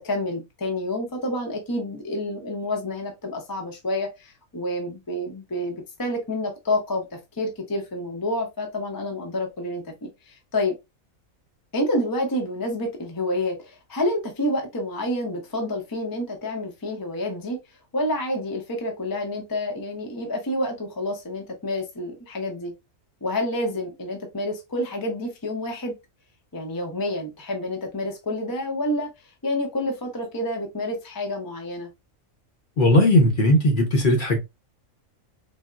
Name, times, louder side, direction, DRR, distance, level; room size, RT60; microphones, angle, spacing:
voice 1, 0.0-10.7 11.7-17.6 17.9-22.7 23.2-25.9 26.5-29.1 29.4-31.9, left 1 dB, 25° left, 0.5 m, -28 dB
voice 2, 32.8-34.4, left 1 dB, 45° left, 0.8 m, -18 dB
4.1 x 2.0 x 2.3 m
omnidirectional pair, 1.4 m